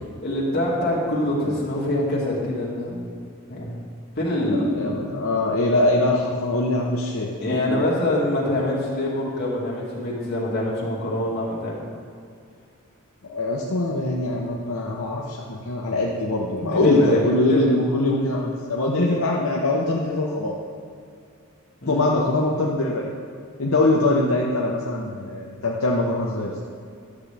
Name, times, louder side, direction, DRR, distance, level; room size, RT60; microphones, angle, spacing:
voice 1, 0.2-3.1 3.5-3.8 4.2-5.2 7.4-11.9 16.5-17.6 21.8-22.1, left 1 dB, 50° left, -6 dB, 2.2 m, -24 dB
voice 2, 4.5-7.3 7.7-7.8 13.2-20.5 21.9-23.1 23.6-26.5, left 2 dB, 70° left, -3 dB, 0.8 m, -23 dB
11.5 x 7.2 x 3.4 m, 2.3 s
head